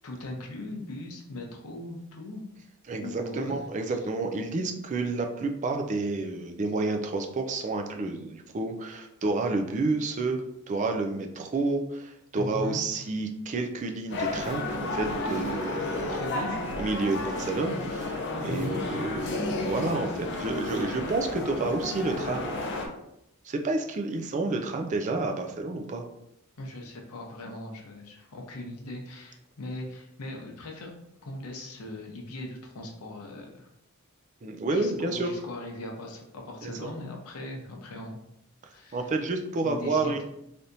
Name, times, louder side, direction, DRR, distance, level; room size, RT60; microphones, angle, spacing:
voice 1, 0.0-2.4 3.0-3.7 12.4-12.9 16.1-16.6 18.5-18.8 19.2-19.4 26.6-30.9 31.2-33.7 34.7-38.2 38.7-39.1 39.6-40.2, left 1 dB, 90° left, 1 dB, 0.7 m, -39 dB
voice 2, 2.9-10.4 10.7-16.4 16.8-22.5 23.4-26.0 34.4-35.3 36.6-36.7 38.9-40.2, right 3 dB, 35° right, 4 dB, 0.3 m, -30 dB
sound 1, 14.1-22.9, left 2 dB, 50° left, 0.5 m, -32 dB
3.4 x 2.7 x 2.6 m, 0.80 s
head